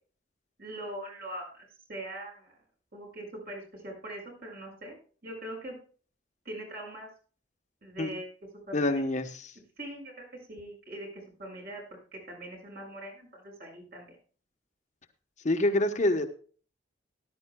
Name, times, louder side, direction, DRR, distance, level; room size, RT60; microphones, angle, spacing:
voice 1, 0.6-2.6 2.9-5.0 5.2-5.8 6.5-7.1 7.8-8.3 8.7-8.9 9.8-11.8 12.1-14.2, right 1 dB, 55° right, -1 dB, 7.0 m, -42 dB
voice 2, 8.7-9.5 15.4-16.3, left 1 dB, 40° left, 6 dB, 1.1 m, -26 dB
18.5 x 11.0 x 2.3 m, 0.40 s
head